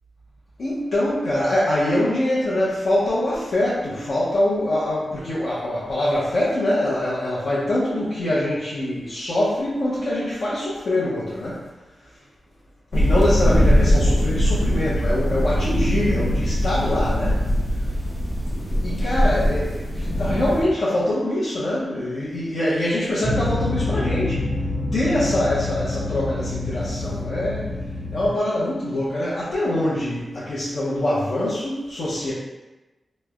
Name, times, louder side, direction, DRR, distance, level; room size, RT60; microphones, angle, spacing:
voice 1, 0.6-11.7 12.9-17.4 18.8-24.5 24.9-27.7 28.1-32.3, left 1 dB, 65° left, -9 dB, 0.7 m, -24 dB
sound 1, 12.9-20.6, equal, 35° left, 0.9 m, -21 dB
sound 2, 23.2-28.3, left 2 dB, 30° right, 0.4 m, -27 dB
3.1 x 2.0 x 3.5 m, 1.1 s
wide cardioid pair, 110°, 0 cm